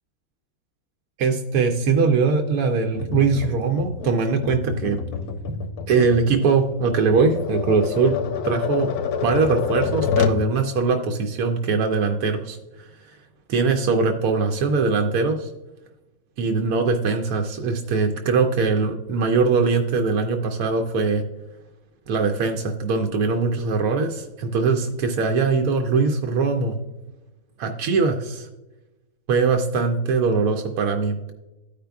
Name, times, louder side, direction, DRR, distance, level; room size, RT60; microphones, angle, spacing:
voice 1, 1.2-5.0 5.9-8.9 9.2-13.2 13.5-15.5 16.4-21.2 22.1-26.8 27.6-28.5 29.3-31.3, right 4 dB, 85° right, 4 dB, 1.1 m, -21 dB
Tap, 2.9-10.5, left 6 dB, 90° left, 1.2 m, -27 dB
13.5 x 5.1 x 2.3 m, 1.0 s
omnidirectional pair, 1.5 m